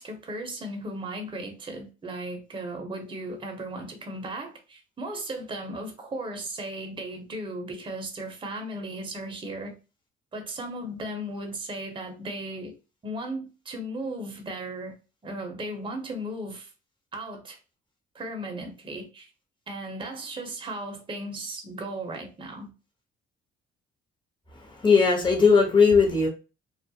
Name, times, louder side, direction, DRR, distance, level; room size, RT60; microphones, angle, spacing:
voice 1, 0.0-9.7 10.3-12.8 13.0-14.9 15.2-16.7 17.1-17.6 18.1-19.3 19.7-22.7, right 1 dB, 25° right, 0.6 m, -36 dB
voice 2, 24.7-26.3, left 5 dB, 25° left, 0.9 m, -18 dB
2.3 x 2.0 x 2.7 m
cardioid pair, 90°, 20 cm